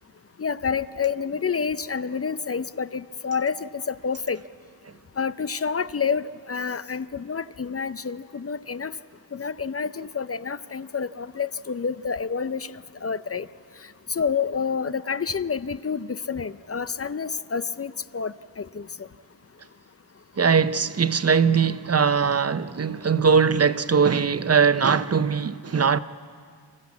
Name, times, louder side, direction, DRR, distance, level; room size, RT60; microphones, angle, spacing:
voice 1, 0.4-4.4 5.2-8.9 9.3-13.5 14.1-18.9, left 6 dB, 35° left, 0.5 m, -28 dB
voice 2, 20.4-26.0, right 6 dB, 35° right, 0.7 m, -21 dB
26.5 x 14.5 x 8.4 m
wide cardioid pair, 65°, 43 cm